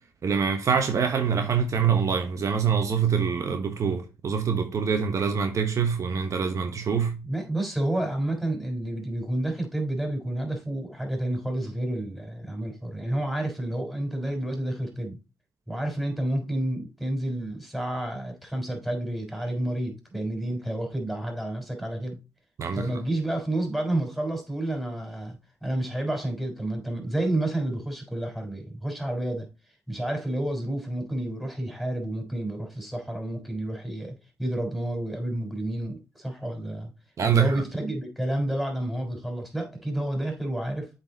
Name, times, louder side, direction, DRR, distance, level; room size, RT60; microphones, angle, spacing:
voice 1, 0.2-7.2 22.6-22.9 37.2-37.5, right 6 dB, 60° right, 1.0 m, -25 dB
voice 2, 7.2-15.2 15.7-22.2 22.7-29.5 29.9-36.9 37.3-40.9, right 1 dB, ahead, 3.7 m, -30 dB
7.8 x 4.2 x 3.9 m
cardioid pair, 65°, 6 cm